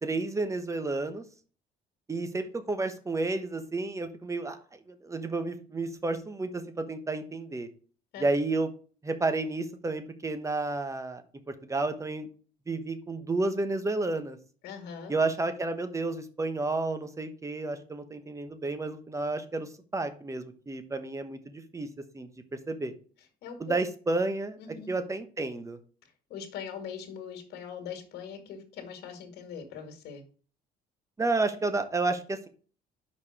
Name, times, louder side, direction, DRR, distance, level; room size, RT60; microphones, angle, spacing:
voice 1, 0.0-1.2 2.1-7.7 8.2-8.7 9.0-12.3 12.7-14.4 15.1-21.9 22.1-22.9 23.6-24.6 24.9-25.8 31.2-32.5, right 3 dB, 20° right, 9 dB, 1.0 m, -31 dB
voice 2, 14.6-15.2 23.4-23.8 24.6-24.9 26.3-30.2, left 7 dB, 75° left, 6 dB, 1.9 m, -41 dB
5.3 x 4.9 x 6.5 m, 0.40 s
cardioid pair, 110°, 17 cm